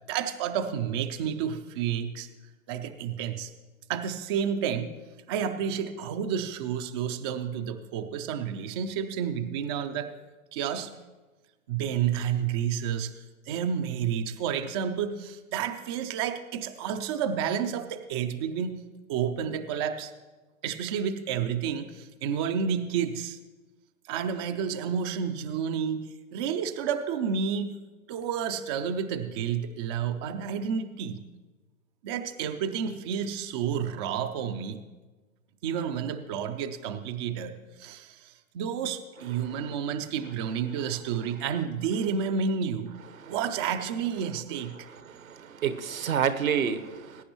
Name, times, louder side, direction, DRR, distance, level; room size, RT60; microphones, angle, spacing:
voice 1, 0.1-2.3 2.7-3.5 3.9-5.0 5.3-10.1 10.5-10.9 11.7-13.1 13.5-18.8 19.1-20.1 20.6-23.4 24.1-27.8 28.1-31.2 32.0-34.8 35.6-43.0 43.3-44.9, right 7 dB, 20° right, 7 dB, 0.3 m, -30 dB
voice 2, 45.1-47.2, right 8 dB, 80° right, 11 dB, 1.0 m, -29 dB
20.0 x 9.7 x 3.0 m, 1.2 s
figure-of-eight pair, 110°, 41 cm